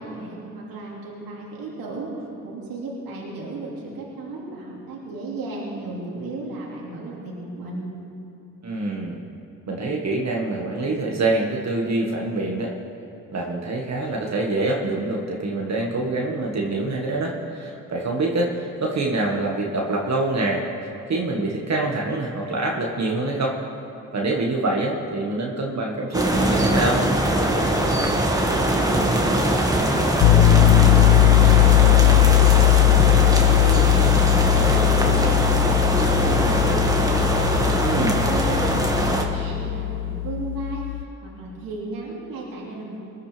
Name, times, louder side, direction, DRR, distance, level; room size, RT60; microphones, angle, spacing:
voice 1, 0.0-2.1 2.4-7.9 28.0-31.0 31.3-37.2 37.8-40.8 41.2-43.0, right 2 dB, 75° right, -4 dB, 2.7 m, -34 dB
voice 2, 8.6-9.2 9.7-12.7 13.3-20.6 21.1-23.6 24.1-27.0 37.8-38.2, right 2 dB, 50° right, -1 dB, 1.8 m, -25 dB
sound 1, 26.1-39.2, right 1 dB, 10° right, 1.9 m, -21 dB
Piano, 30.2-41.0, left 16 dB, 75° left, 0.6 m, -18 dB
20.0 x 12.0 x 3.5 m, 3.0 s
supercardioid pair, 55°, 35 cm